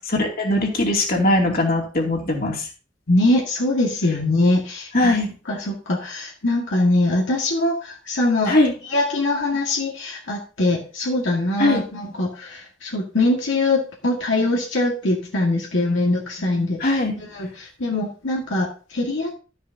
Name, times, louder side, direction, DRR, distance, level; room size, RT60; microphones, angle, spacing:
voice 1, 0.1-2.7 4.9-5.3 8.5-8.7 11.6-11.8 16.8-17.1, left 1 dB, 50° left, 0 dB, 2.7 m, -20 dB
voice 2, 3.1-5.2 5.5-8.6 8.8-19.3, left 2 dB, 75° left, -1 dB, 1.8 m, -22 dB
12.5 x 10.0 x 2.8 m, 0.37 s
head